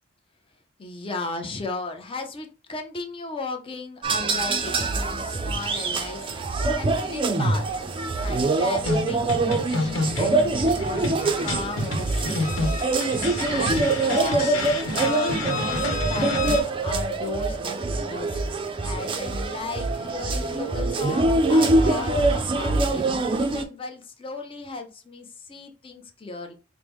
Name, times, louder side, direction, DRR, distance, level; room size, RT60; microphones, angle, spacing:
voice 1, 0.8-7.7 8.2-12.7 13.1-23.0 23.3-26.5, left 3 dB, 25° left, 5 dB, 0.6 m, -36 dB
sound 1, 4.0-23.6, right 2 dB, 25° right, 0.4 m, -24 dB
sound 2, 8.8-16.6, left 2 dB, 75° left, 1.0 m, -29 dB
4.5 x 2.0 x 3.4 m, 0.33 s
head